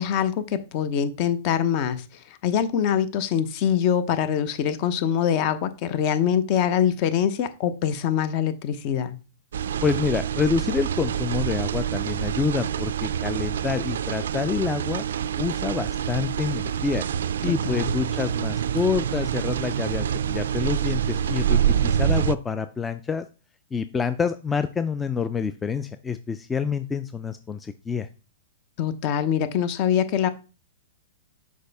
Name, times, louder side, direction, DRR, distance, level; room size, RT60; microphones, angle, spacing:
voice 1, 0.0-2.0 2.4-9.1 17.5-17.9 28.8-30.3, left 9 dB, 45° left, 0.8 m, -24 dB
sound 1, 9.5-22.4, right 9 dB, 75° right, 0.3 m, -26 dB
voice 2, 9.8-15.0 15.4-17.0 17.4-23.3 23.7-28.1, left 5 dB, 15° left, 0.4 m, -27 dB
6.5 x 4.7 x 3.4 m
hypercardioid pair, 120°, 0 cm